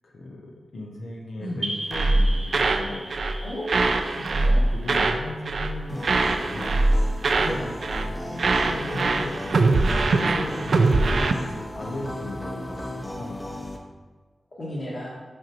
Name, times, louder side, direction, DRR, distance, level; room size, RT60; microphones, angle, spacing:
voice 1, 0.0-3.1 4.7-6.8 7.3-7.4 8.3-13.4, left 2 dB, 75° left, -1 dB, 0.7 m, -36 dB
sound 1, 1.6-6.1, right 1 dB, 35° right, 1.0 m, -37 dB
sound 2, 1.9-2.9 3.1-3.4 3.7-5.2 5.5-5.8 6.0-7.6 7.8-8.1 8.4-11.3, right 3 dB, 60° right, 0.4 m, -22 dB
voice 2, 3.4-5.1 7.3-7.7 10.1-10.4 14.6-15.1, equal, 50° left, -10 dB, 1.6 m, -34 dB
sound 3, 5.9-13.8, left 1 dB, 10° left, 0.6 m, -36 dB
6.3 x 6.1 x 2.9 m, 1.4 s
wide cardioid pair, 160°, 0 cm